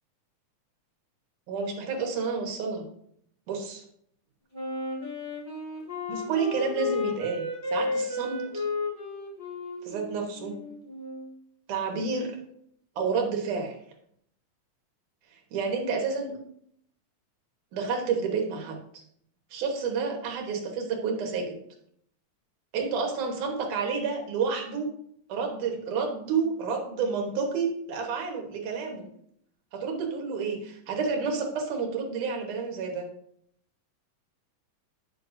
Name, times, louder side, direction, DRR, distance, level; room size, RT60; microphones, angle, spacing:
voice 1, 1.5-2.9 3.5-3.8 6.1-8.6 9.8-10.6 11.7-12.4 13.0-13.8 15.3-16.4 17.7-19.0 19.5-21.5 22.7-24.9 25.3-29.1 29.7-33.1, right 5 dB, 90° right, 1 dB, 2.8 m, -30 dB
Wind instrument woodwind instrument, 4.5-11.3, left 3 dB, 15° left, 1.8 m, -33 dB
10.0 x 6.6 x 2.7 m, 0.69 s
omnidirectional pair, 3.4 m